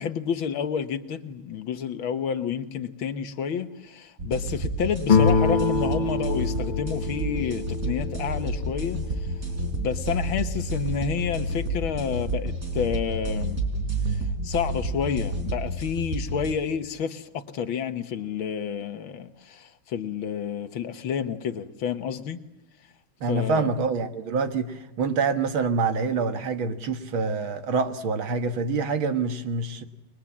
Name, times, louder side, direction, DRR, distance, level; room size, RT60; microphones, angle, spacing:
voice 1, 0.0-9.3 9.7-13.6 14.1-22.4 23.3-23.7, left 7 dB, 70° left, 1.9 m, -30 dB
sound 1, 4.2-16.5, right 1 dB, 40° right, 4.7 m, -30 dB
sound 2, 5.0-8.7, left 4 dB, 55° left, 0.5 m, -25 dB
voice 2, 23.2-29.8, right 4 dB, 70° right, 2.3 m, -26 dB
29.5 x 22.0 x 7.3 m
omnidirectional pair, 2.4 m